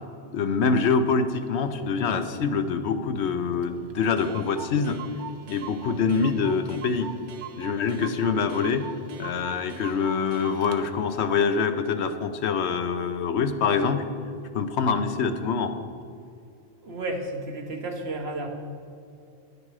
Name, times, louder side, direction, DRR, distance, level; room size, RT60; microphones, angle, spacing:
voice 1, 0.3-5.0 5.5-7.1 7.6-8.9 9.2-14.0 14.5-15.7, left 5 dB, 75° left, 9 dB, 1.0 m, -25 dB
Clock, 3.6-3.7 3.9-10.8, right 8 dB, 85° right, 1.1 m, -41 dB
voice 2, 16.8-18.5, right 2 dB, 65° right, 2 dB, 1.5 m, -32 dB
10.0 x 9.6 x 4.8 m, 2.5 s
omnidirectional pair, 1.1 m